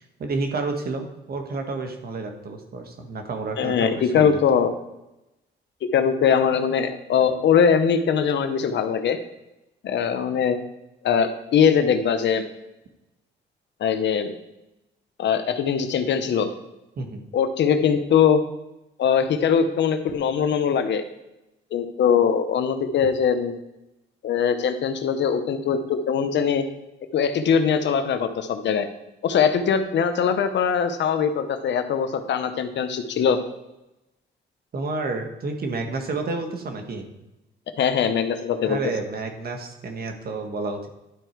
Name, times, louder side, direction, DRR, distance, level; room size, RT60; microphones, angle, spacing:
voice 1, 0.0-4.4 17.0-17.2 34.7-37.1 38.6-40.9, right 3 dB, 50° right, 4 dB, 1.5 m, -30 dB
voice 2, 3.6-4.7 5.9-9.2 9.8-10.6 11.0-12.4 13.8-14.3 15.2-16.5 17.3-18.4 19.0-21.0 21.7-23.5 24.2-26.6 27.1-28.9 29.2-33.4 37.8-38.8, left 7 dB, 65° left, 9 dB, 0.9 m, -21 dB
11.5 x 4.5 x 4.6 m, 0.94 s
cardioid pair, 90°, 20 cm